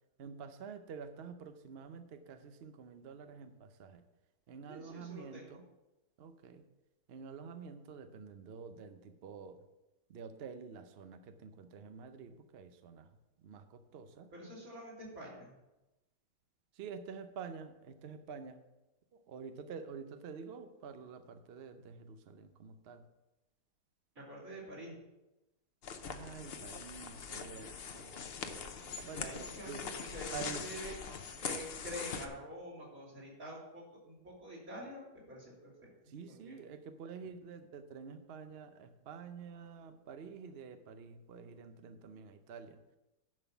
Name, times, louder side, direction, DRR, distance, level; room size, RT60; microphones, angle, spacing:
voice 1, 0.2-4.0 4.5-5.6 6.2-6.6 7.1-9.6 10.1-13.1 13.4-14.3 16.7-18.6 19.1-23.1 26.1-29.8 30.3-30.7 36.1-43.0, right 6 dB, 65° right, 9 dB, 0.6 m, -48 dB
voice 2, 4.7-5.6 14.3-15.6 24.2-24.9 29.1-31.0 31.4-35.7 36.4-36.6, equal, 50° right, -5 dB, 3.6 m, -47 dB
sound 1, 25.8-32.3, left 6 dB, 55° left, 0.7 m, -42 dB
11.0 x 5.5 x 5.8 m, 0.99 s
omnidirectional pair, 1.9 m